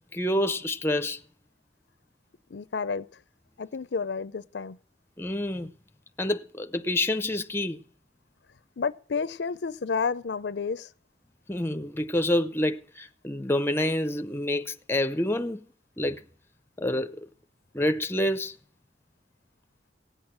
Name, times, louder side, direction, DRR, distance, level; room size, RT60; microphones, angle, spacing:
voice 1, 0.1-1.2 5.2-5.7 6.2-7.8 11.5-15.7 16.0-16.2 16.8-17.3 17.7-18.6, left 1 dB, 15° left, 0.6 m, -27 dB
voice 2, 2.5-3.1 3.6-4.8 8.8-10.9, left 5 dB, 70° left, 0.5 m, -30 dB
16.5 x 8.9 x 6.2 m
head